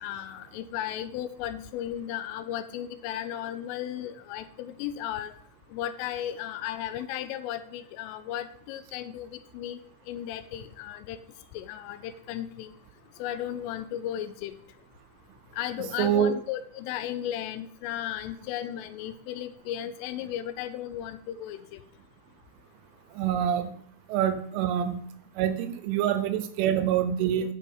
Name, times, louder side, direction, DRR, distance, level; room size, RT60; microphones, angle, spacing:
voice 1, 0.0-5.3 5.7-9.8 10.1-11.2 11.5-12.7 13.2-14.5 15.5-21.8, left 11 dB, 85° left, 11 dB, 3.0 m, -35 dB
voice 2, 16.0-16.3 23.1-23.8 24.1-25.1 25.4-27.5, right 10 dB, 80° right, 10 dB, 3.0 m, -26 dB
9.2 x 6.1 x 6.2 m, 0.67 s
omnidirectional pair, 5.9 m